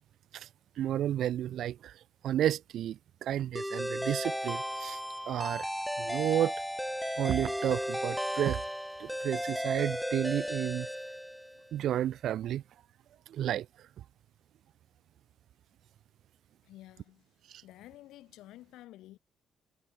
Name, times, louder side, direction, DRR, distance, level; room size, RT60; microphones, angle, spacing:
voice 1, 0.8-2.0 2.2-5.0 5.3-5.7 6.0-6.5 7.2-8.6 9.0-10.9 11.7-12.6 13.3-13.7 17.5-17.6, right 11 dB, 75° right, 0.5 m, -31 dB
sound 1, 3.6-11.7, equal, ahead, 0.8 m, -35 dB
voice 2, 16.6-17.3 17.6-19.2, left 15 dB, 90° left, 5.6 m, -51 dB
cardioid pair, 90°, 0 cm